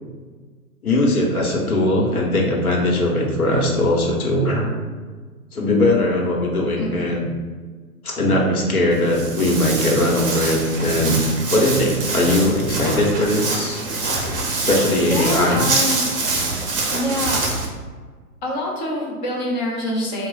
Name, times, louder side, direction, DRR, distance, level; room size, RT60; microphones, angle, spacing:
voice 1, 0.8-4.8 5.5-7.3 8.0-11.2 11.5-13.8 14.7-15.6, left 1 dB, 70° left, -2 dB, 1.1 m, -20 dB
Walk footsteps, 8.9-17.7, right 3 dB, 40° right, 0.8 m, -25 dB
voice 2, 15.1-16.0 16.9-17.5 18.4-20.3, left 1 dB, 30° left, -2 dB, 0.8 m, -25 dB
3.5 x 2.4 x 4.0 m, 1.4 s
figure-of-eight pair, 125°, 45 cm